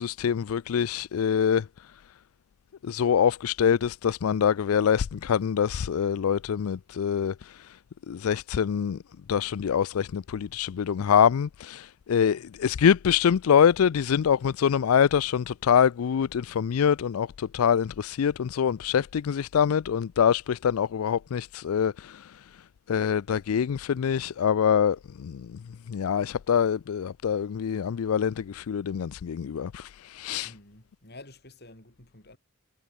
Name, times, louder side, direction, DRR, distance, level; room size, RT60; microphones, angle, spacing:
voice 1, 0.0-1.7 2.8-7.7 8.1-9.0 9.3-22.3 22.9-25.6 25.9-30.5, left 8 dB, 85° left, 0.4 m, -25 dB
voice 2, 30.4-32.4, left 2 dB, 50° left, 6.2 m, -49 dB
head